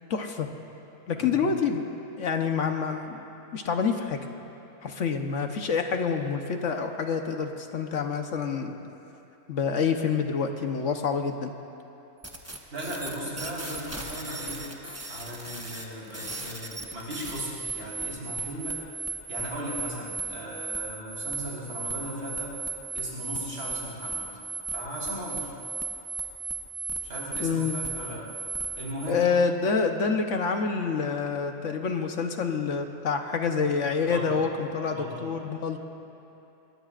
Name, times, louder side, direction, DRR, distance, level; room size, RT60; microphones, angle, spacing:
voice 1, 0.1-0.5 1.1-3.2 3.5-4.2 4.8-8.8 9.5-11.5 27.4-27.8 29.1-35.8, left 5 dB, 70° left, 4 dB, 1.3 m, -27 dB
voice 2, 1.1-1.5 12.7-14.7 15.1-18.8 19.3-22.6 22.9-24.3 24.7-25.5 27.0-28.3 28.8-29.3 34.1-34.5 34.9-35.3, equal, 60° right, -6 dB, 4.8 m, -37 dB
sound 1, 12.2-29.1, right 4 dB, 10° right, 1.1 m, -36 dB
25.5 x 21.0 x 2.5 m, 2.9 s
omnidirectional pair, 1.3 m